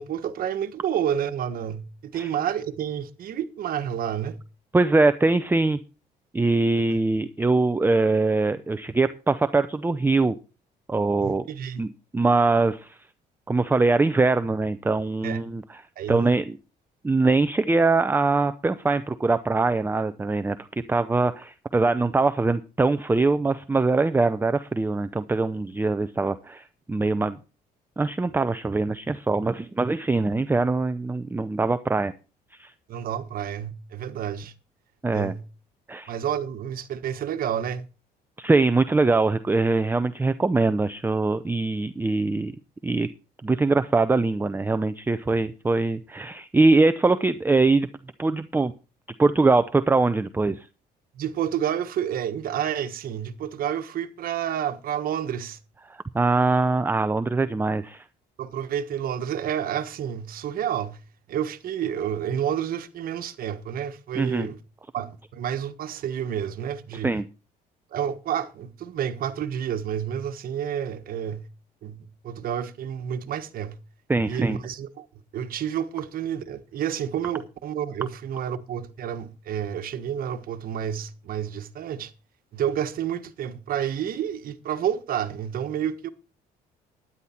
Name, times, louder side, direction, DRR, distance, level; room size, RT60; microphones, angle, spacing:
voice 1, 0.0-4.4 6.9-7.0 11.2-11.8 15.2-15.4 16.0-16.3 32.9-34.5 35.1-35.4 36.1-37.9 51.1-55.6 58.4-61.0 61.3-64.6 64.9-67.2 67.9-71.4 71.8-73.8 74.3-75.1 75.3-82.1 82.5-86.1, right 9 dB, 60° right, 1.4 m, -29 dB
voice 2, 4.7-5.8 6.3-10.3 10.9-11.5 11.8-13.0 13.5-15.6 16.1-16.6 17.0-20.6 20.9-27.4 28.0-32.1 32.6-32.7 35.0-35.3 35.9-36.1 38.4-42.5 42.8-43.1 43.4-47.9 48.2-48.7 49.2-50.7 55.9-58.0 64.2-64.5 67.0-67.2 74.1-74.6, right 3 dB, 10° right, 0.6 m, -22 dB
12.5 x 10.0 x 4.4 m
cardioid pair, 110°, 17 cm